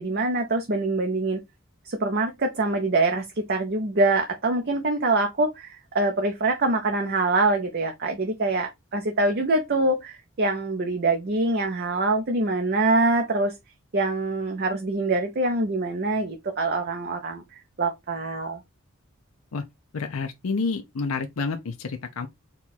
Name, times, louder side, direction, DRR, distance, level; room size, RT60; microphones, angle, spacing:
voice 1, 0.0-1.4 1.9-13.5 13.9-17.4 17.8-18.6, right 2 dB, 45° right, 0.6 m, -24 dB
voice 2, 19.9-22.3, left 4 dB, 70° left, 0.5 m, -29 dB
4.3 x 2.3 x 4.1 m
head